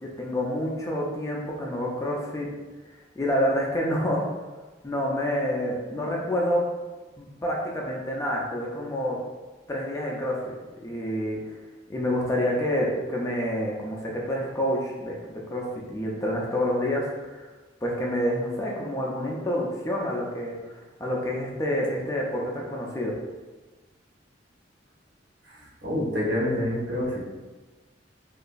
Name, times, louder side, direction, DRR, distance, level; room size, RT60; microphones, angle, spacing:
voice 1, 0.0-2.5 3.2-4.2 4.8-6.6 7.2-9.2 9.7-11.4 11.9-17.5 17.8-20.6 21.0-23.1, equal, 15° left, -3 dB, 0.4 m, -28 dB
voice 2, 25.4-27.2, left 1 dB, 65° right, -6 dB, 0.9 m, -27 dB
2.9 x 2.5 x 2.2 m, 1.3 s
head